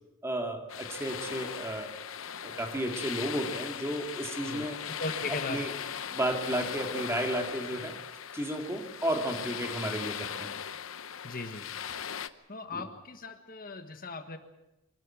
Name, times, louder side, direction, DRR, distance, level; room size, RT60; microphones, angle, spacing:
voice 1, 0.2-1.9 2.4-4.8 5.5-5.7 6.1-7.9 8.3-10.5 12.7-12.8, right 1 dB, 15° right, 3 dB, 2.4 m, -33 dB
sound 1, 0.7-12.3, left 8 dB, 75° left, 0.9 m, -39 dB
voice 2, 4.5-5.6 11.2-11.7 12.5-14.4, left 3 dB, 45° left, 7 dB, 1.5 m, -38 dB
24.0 x 13.5 x 9.2 m, 1.0 s
head